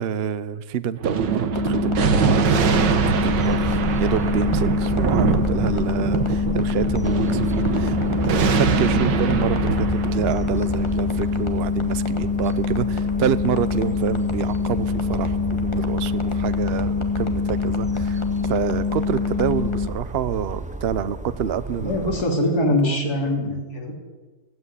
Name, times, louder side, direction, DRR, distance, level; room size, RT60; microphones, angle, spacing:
voice 1, 0.0-8.0 8.2-22.1 22.8-23.0 23.4-23.6, right 8 dB, 50° right, 15 dB, 0.8 m, -27 dB
Thunder, 1.0-11.9, right 6 dB, 85° right, 1.9 m, -24 dB
sound 1, 1.5-19.9, left 5 dB, 15° left, 1.9 m, -25 dB
sound 2, 2.6-22.2, right 2 dB, 10° right, 0.4 m, -32 dB
voice 2, 21.8-23.9, left 1 dB, 60° left, 0 dB, 3.9 m, -23 dB
16.5 x 16.0 x 9.8 m, 1.3 s
omnidirectional pair, 1.9 m